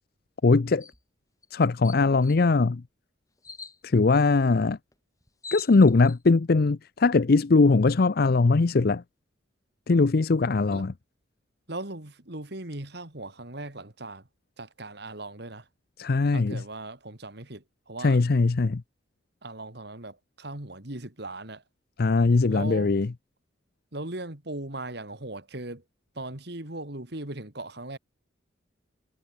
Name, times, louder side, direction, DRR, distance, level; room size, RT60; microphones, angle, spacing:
voice 1, 0.4-0.9 1.5-2.8 3.8-4.8 5.5-9.0 9.9-10.9 16.0-16.6 18.0-18.8 22.0-23.1, left 3 dB, 50° left, 0.5 m, -21 dB
sound 1, 0.8-1.0 1.4-1.5 1.8-2.4 3.4-3.8 4.9-5.0 5.2-6.2, left 4 dB, 20° left, 5.9 m, -42 dB
voice 2, 11.7-14.2 14.6-15.6 16.3-18.2 19.4-21.6 22.5-22.9 23.9-25.8 26.2-28.0, right 2 dB, 60° right, 2.8 m, -38 dB
head